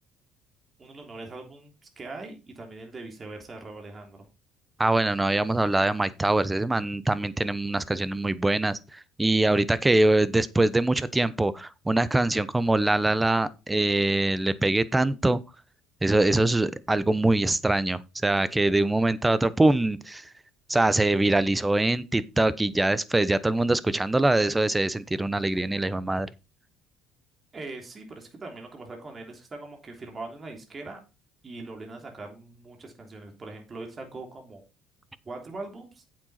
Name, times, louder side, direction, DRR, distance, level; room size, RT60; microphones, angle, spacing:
voice 1, 0.8-4.3 27.5-31.0 31.4-34.6 35.2-36.0, right 3 dB, 30° right, 3.4 m, -41 dB
voice 2, 4.8-8.8 9.2-15.4 16.0-20.2 20.7-26.3, right 2 dB, 15° right, 0.9 m, -23 dB
8.7 x 7.7 x 4.3 m
supercardioid pair, 75°, 0 cm